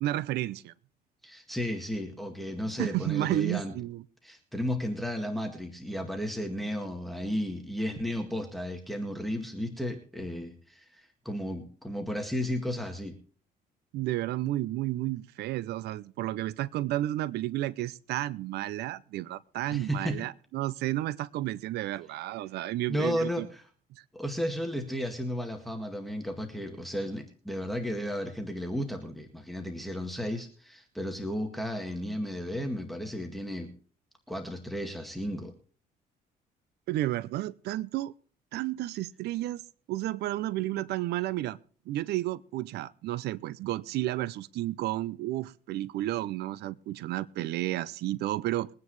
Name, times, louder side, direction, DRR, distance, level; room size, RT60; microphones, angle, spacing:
voice 1, 0.0-0.7 2.8-4.0 13.9-23.5 36.9-38.1 38.5-39.6 39.9-41.6 41.9-48.7, right 15 dB, 75° right, 0.6 m, -32 dB
voice 2, 1.2-3.7 4.2-13.2 19.7-20.2 22.9-23.7 24.1-33.7 34.3-35.5, equal, ahead, 2.0 m, -34 dB
22.5 x 9.5 x 3.2 m
cardioid pair, 110°, 17 cm